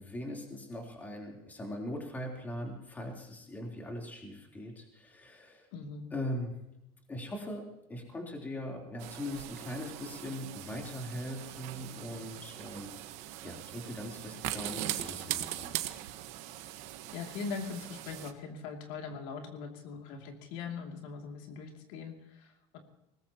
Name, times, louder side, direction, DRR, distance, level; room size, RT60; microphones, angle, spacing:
voice 1, 0.0-5.7 6.1-6.7 7.1-13.0 13.4-15.8, left 1 dB, 15° left, 0 dB, 3.6 m, -40 dB
voice 2, 5.7-6.1 17.1-22.8, left 5 dB, 70° left, 2 dB, 2.7 m, -41 dB
sound 1, 9.0-18.3, right 14 dB, 60° right, 1.4 m, -41 dB
22.0 x 19.5 x 3.0 m, 0.86 s
cardioid pair, 155°, 13 cm